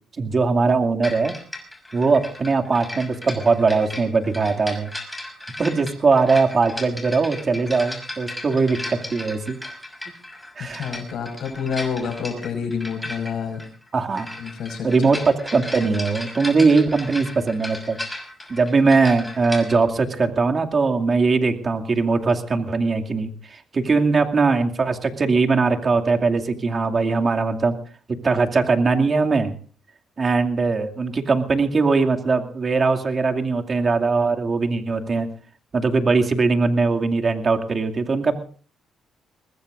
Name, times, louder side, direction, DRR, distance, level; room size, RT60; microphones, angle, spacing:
voice 1, 0.2-1.3 1.9-4.9 5.6-9.6 10.6-10.9 13.9-14.3 14.8-15.2 15.5-18.0 18.5-27.8 28.2-29.5 30.2-35.3 35.7-38.3, right 4 dB, 40° right, 4 dB, 2.4 m, -20 dB
sound 1, 1.0-19.8, left 1 dB, 5° left, 5.8 m, -36 dB
voice 2, 10.6-13.6 14.4-15.2, left 6 dB, 70° left, 5 dB, 5.4 m, -28 dB
24.0 x 20.0 x 2.6 m, 0.42 s
cardioid pair, 90°, 0 cm